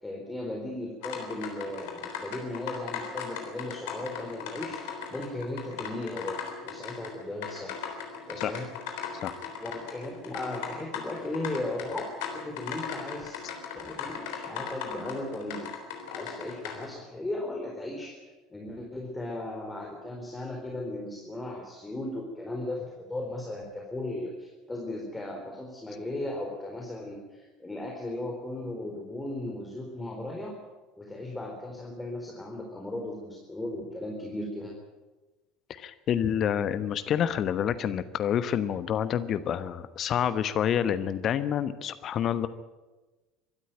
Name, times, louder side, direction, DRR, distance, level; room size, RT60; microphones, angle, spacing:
voice 1, 0.0-4.8 5.1-7.8 8.3-8.7 9.6-13.4 13.8-15.7 16.1-18.2 18.5-30.5 31.0-34.7, left 1 dB, 10° left, 0 dB, 4.1 m, -36 dB
sound 1, 1.0-16.9, left 7 dB, 60° left, 3.6 m, -38 dB
voice 2, 35.7-42.5, left 9 dB, 40° left, 13 dB, 1.1 m, -28 dB
24.5 x 13.0 x 9.2 m, 1.2 s
figure-of-eight pair, 65°, 0 cm